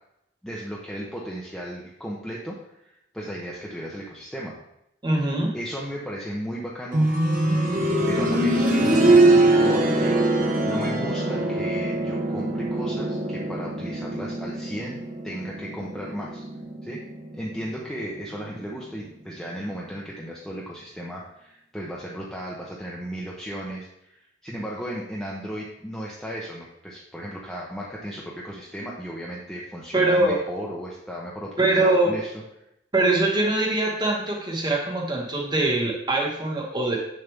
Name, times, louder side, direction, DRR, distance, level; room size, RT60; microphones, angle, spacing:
voice 1, 0.4-4.6 5.5-7.1 8.1-10.2 10.7-16.5 16.8-17.0 17.3-32.3, equal, 5° left, -4 dB, 0.9 m, -35 dB
voice 2, 5.0-5.6 29.9-30.3 31.6-32.1 32.9-37.0, right 2 dB, 25° right, -1 dB, 1.6 m, -22 dB
sound 1, 6.9-17.7 18.0-18.1 19.0-19.1, right 2 dB, 45° right, 1.2 m, -22 dB
7.7 x 6.8 x 3.6 m, 0.82 s
head